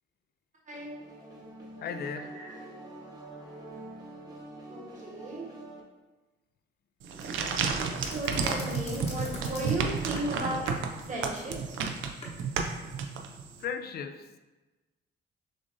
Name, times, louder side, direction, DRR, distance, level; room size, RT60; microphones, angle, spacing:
sound 1, 0.7-5.8, right 1 dB, 20° right, 1.1 m, -45 dB
voice 1, 0.7-1.0 2.3-2.5 4.7-5.5 7.7-10.7 11.1-11.8, right 1 dB, 40° right, -3 dB, 1.3 m, -35 dB
voice 2, 1.8-2.3 13.6-14.4, left 7 dB, 55° left, 9 dB, 0.4 m, -36 dB
sound 2, 7.0-13.6, right 5 dB, 80° right, 0.5 m, -32 dB
sound 3, 7.2-12.3, left 1 dB, 30° left, 0.9 m, -43 dB
6.2 x 2.6 x 2.6 m, 1.2 s
cardioid pair, 90°, 20 cm